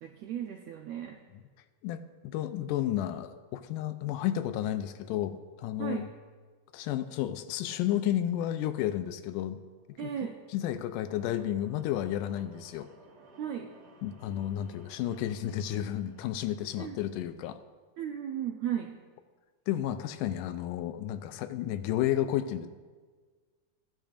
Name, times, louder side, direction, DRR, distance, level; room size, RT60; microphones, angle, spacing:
voice 1, 0.0-1.2 5.8-6.1 10.0-10.4 13.4-13.7 16.8-17.0 18.0-19.0, right 9 dB, 85° right, 2 dB, 1.5 m, -35 dB
voice 2, 1.8-6.1 6.7-9.6 10.0-10.1 10.5-12.9 14.0-17.6 19.7-22.7, left 12 dB, 90° left, 10 dB, 2.2 m, -32 dB
sound 1, 9.6-17.3, right 3 dB, 55° right, 2.2 m, -59 dB
15.0 x 10.5 x 2.5 m, 1.5 s
omnidirectional pair, 3.7 m